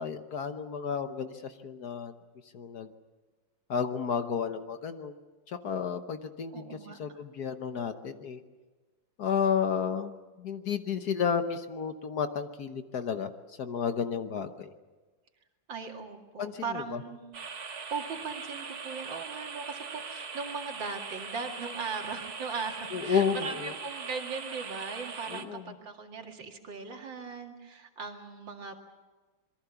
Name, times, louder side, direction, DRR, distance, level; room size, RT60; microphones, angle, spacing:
voice 1, 0.0-2.1 2.5-2.9 3.7-5.1 5.5-6.7 7.0-8.4 9.2-13.3 13.6-14.7 16.4-16.8 22.9-23.7 25.3-25.6, left 7 dB, 55° left, 8 dB, 1.5 m, -32 dB
voice 2, 6.5-7.2 15.7-17.3 17.9-28.8, right 5 dB, 70° right, 3 dB, 2.9 m, -39 dB
sound 1, 17.3-25.4, right 5 dB, 55° right, 1.9 m, -41 dB
26.5 x 22.5 x 7.0 m, 1.3 s
omnidirectional pair, 2.1 m